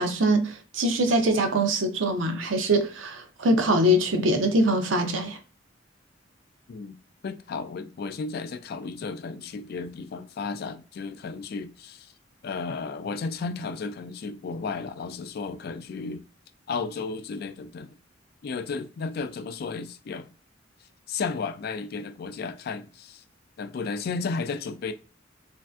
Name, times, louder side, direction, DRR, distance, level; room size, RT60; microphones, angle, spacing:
voice 1, 0.0-5.4, right 1 dB, 85° right, 0.6 m, -23 dB
voice 2, 7.2-12.1 12.4-16.3 16.7-18.0 18.4-20.3 21.1-23.2 23.6-24.9, left 4 dB, 55° left, 0.3 m, -33 dB
3.2 x 2.6 x 2.3 m
head